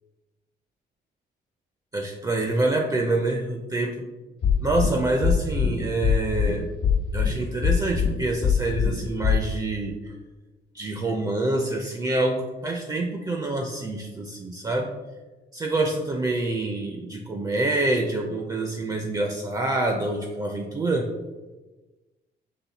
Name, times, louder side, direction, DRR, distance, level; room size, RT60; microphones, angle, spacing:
voice 1, 1.9-4.1 4.6-6.7 7.1-10.1 10.7-15.0 15.5-21.1, right 2 dB, 20° right, 3 dB, 0.4 m, -26 dB
sound 1, 4.4-4.9 5.2-5.7 6.0-6.5 6.8-7.3 7.6-8.1 8.4-8.9 9.2-9.3, left 8 dB, 65° left, 1.0 m, -21 dB
5.7 x 2.1 x 3.9 m, 1.2 s
cardioid pair, 150°, 18 cm